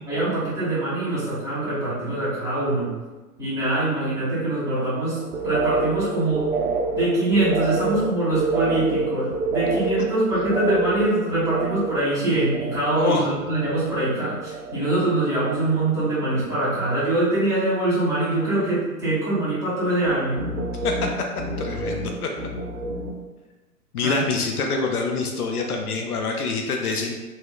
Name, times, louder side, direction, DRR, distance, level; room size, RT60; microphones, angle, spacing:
voice 1, 0.1-2.9 3.4-6.5 6.9-20.4 24.0-24.2, right 2 dB, 5° right, -12 dB, 1.2 m, -23 dB
sound 1, 5.1-14.1 14.3-15.0 15.3-16.0 16.3-16.8 20.1-23.2, right 3 dB, 50° right, 0.6 m, -28 dB
voice 2, 13.0-13.3 20.8-21.3 21.6-22.3 23.9-27.1, left 4 dB, 70° left, 2 dB, 0.6 m, -26 dB
2.9 x 2.9 x 2.3 m, 1.2 s
figure-of-eight pair, 110°, 46 cm